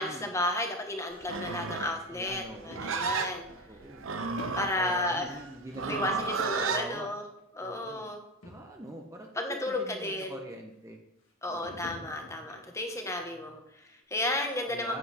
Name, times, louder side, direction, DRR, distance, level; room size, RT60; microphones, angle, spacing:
voice 1, 0.0-3.4 4.6-5.4 5.9-7.2 7.5-8.2 9.3-10.3 11.4-15.0, left 1 dB, 15° left, 3 dB, 1.1 m, -33 dB
sound 1, 0.8-0.9 1.9-2.0 2.7-3.6 4.2-4.7 5.1-5.2 6.2-6.3 6.4-6.5 7.4-7.5 7.8-7.9 8.1-8.2 8.4-8.9 9.4-9.5 11.6-12.9 13.3-13.5 14.0-14.1, left 1 dB, 80° left, 2.2 m, -50 dB
Livestock farm animals working animals, 1.2-6.9, right 5 dB, 70° right, 0.8 m, -33 dB
voice 2, 2.1-2.8 3.5-4.0 4.8-6.3 6.5-7.1 7.6-8.0 8.4-11.0 11.5-11.9 14.7-15.0, right 1 dB, 15° right, 2 dB, 0.7 m, -43 dB
sound 2, 4.4-4.7 6.4-6.7 7.8-7.9, equal, 55° left, 1.8 m, -43 dB
9.6 x 8.1 x 4.2 m, 0.85 s
head